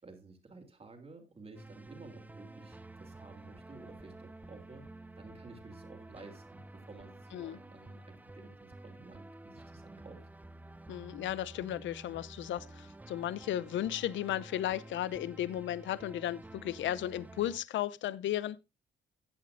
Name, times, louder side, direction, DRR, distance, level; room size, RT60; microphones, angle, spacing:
voice 1, 0.0-4.9 5.2-10.2, right 3 dB, 30° right, 3.0 m, -53 dB
sound 1, 1.5-17.6, right 2 dB, 10° right, 0.5 m, -51 dB
voice 2, 10.9-18.6, left 12 dB, 70° left, 0.6 m, -35 dB
14.5 x 8.4 x 2.5 m
cardioid pair, 90°, 20 cm